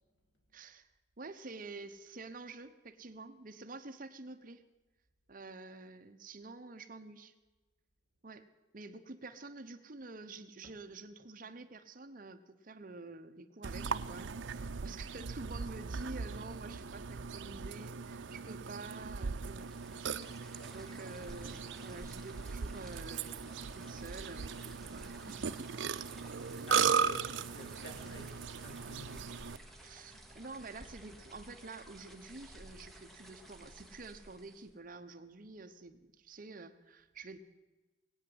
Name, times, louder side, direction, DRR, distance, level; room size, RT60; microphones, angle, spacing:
voice 1, 0.5-0.9 1.2-4.6 5.3-7.3 8.2-8.5 8.7-19.7 20.3-25.9 29.8-37.4, right 3 dB, 45° right, 9 dB, 0.9 m, -49 dB
Burping eructation, 13.6-29.6, right 6 dB, 75° right, 0.6 m, -38 dB
sound 1, 19.4-34.8, right 1 dB, ahead, 1.4 m, -55 dB
voice 2, 26.7-29.3, equal, 65° left, 2 dB, 3.4 m, -51 dB
20.0 x 8.8 x 7.9 m, 1.2 s
head